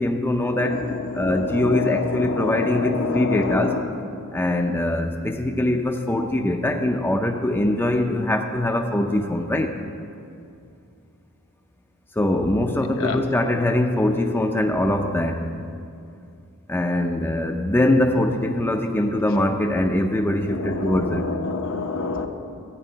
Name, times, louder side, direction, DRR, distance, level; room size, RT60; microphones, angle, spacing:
voice 1, 0.0-0.8 1.1-3.8 4.3-9.8 12.2-15.5 16.7-21.3, left 1 dB, 10° left, 4 dB, 0.5 m, -22 dB
voice 2, 0.6-3.8 13.0-13.2 20.5-22.3, left 4 dB, 70° left, 4 dB, 0.9 m, -27 dB
13.0 x 5.4 x 8.3 m, 2.5 s
head